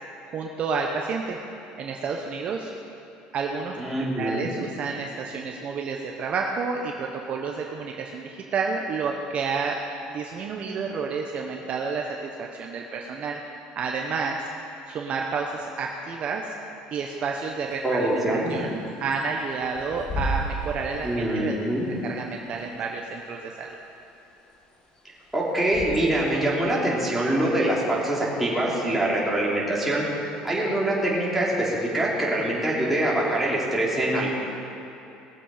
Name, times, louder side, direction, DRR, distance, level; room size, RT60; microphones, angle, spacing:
voice 1, 0.3-1.4 1.8-2.7 3.3-3.8 4.2-9.8 10.1-13.4 13.7-14.4 14.9-16.5 16.9-18.2 18.5-21.6 22.0-23.7, right 5 dB, 45° right, 1 dB, 1.0 m, -30 dB
voice 2, 3.8-4.5 17.8-18.7 21.0-21.9 25.3-34.4, right 1 dB, 5° right, -6 dB, 3.5 m, -24 dB
Bird / Wind, 17.7-26.4, right 1 dB, 30° left, 1.8 m, -36 dB
19.0 x 7.6 x 5.1 m, 2.9 s
supercardioid pair, 115°, 3 cm